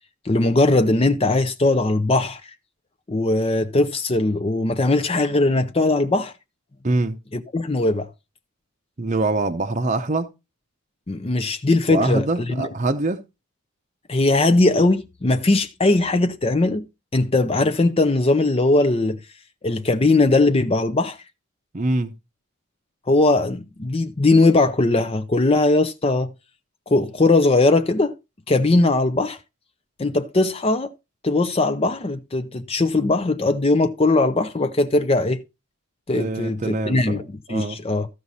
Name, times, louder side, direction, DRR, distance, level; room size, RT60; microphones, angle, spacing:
voice 1, 0.2-2.5 3.1-6.3 7.3-8.1 11.1-12.7 14.1-16.9 17.1-19.2 19.6-21.2 23.1-26.3 26.9-28.1 28.5-29.4 30.0-30.9 31.2-35.4 36.1-37.2 37.5-38.1, left 2 dB, 25° left, 0.5 m, -19 dB
voice 2, 6.8-7.2 9.0-10.3 11.9-13.2 21.7-22.1 36.1-37.8, right 2 dB, 35° right, 0.7 m, -24 dB
14.5 x 6.0 x 4.1 m
head